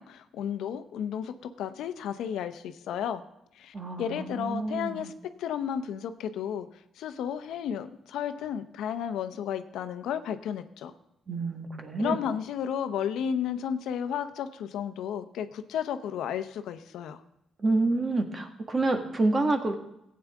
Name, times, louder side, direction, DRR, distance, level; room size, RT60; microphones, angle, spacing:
voice 1, 0.0-3.2 3.6-5.1 5.4-6.7 7.0-10.9 12.0-17.2, left 8 dB, 85° left, 10 dB, 0.7 m, -33 dB
voice 2, 3.7-5.1 11.3-12.2 17.6-19.8, right 2 dB, 35° right, 5 dB, 1.6 m, -28 dB
15.0 x 8.7 x 3.5 m, 0.81 s
cardioid pair, 85°, 0 cm